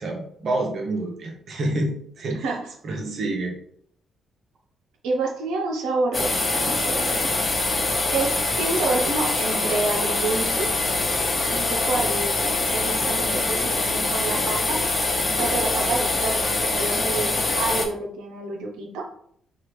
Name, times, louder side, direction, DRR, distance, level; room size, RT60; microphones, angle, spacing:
voice 1, 0.0-2.4 2.8-3.6, right 2 dB, 60° right, 1 dB, 0.8 m, -28 dB
voice 2, 2.3-2.6 5.0-7.3 8.1-10.7 11.5-19.0, right 3 dB, 85° right, 0 dB, 0.7 m, -28 dB
sound 1, 6.1-17.9, left 2 dB, 35° left, 0.7 m, -24 dB
2.9 x 2.5 x 3.2 m, 0.65 s
supercardioid pair, 55°, 0 cm